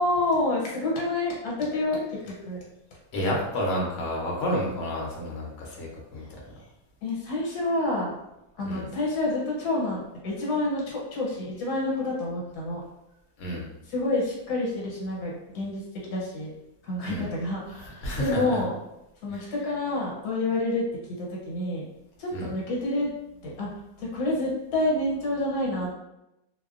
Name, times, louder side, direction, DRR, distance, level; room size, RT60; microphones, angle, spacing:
voice 1, 0.0-2.0 2.3-2.6 7.0-8.1 8.6-12.8 13.8-16.5 16.8-18.8 19.2-20.8 21.2-21.8 22.2-23.1 23.4-25.9, left 2 dB, 75° left, -4 dB, 1.3 m, -28 dB
voice 2, 3.1-6.3 8.6-8.9 13.4-13.7 17.0-17.3 18.0-18.6 19.3-19.4 22.3-22.5, equal, 60° left, -3 dB, 0.9 m, -30 dB
2.7 x 2.1 x 2.4 m, 0.89 s
omnidirectional pair, 1.7 m